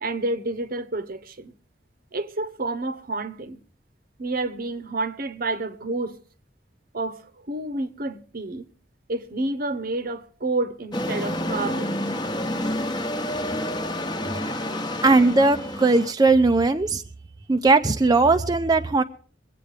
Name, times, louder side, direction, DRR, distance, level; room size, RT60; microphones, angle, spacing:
voice 1, 0.0-1.5 2.1-3.6 4.2-6.2 6.9-8.7 9.1-12.0, right 2 dB, 50° right, 0.9 m, -29 dB
sound 1, 10.9-16.1, left 1 dB, 25° left, 1.1 m, -28 dB
voice 2, 15.0-17.0 17.5-19.0, right 3 dB, 20° right, 0.5 m, -18 dB
22.5 x 8.5 x 4.9 m
head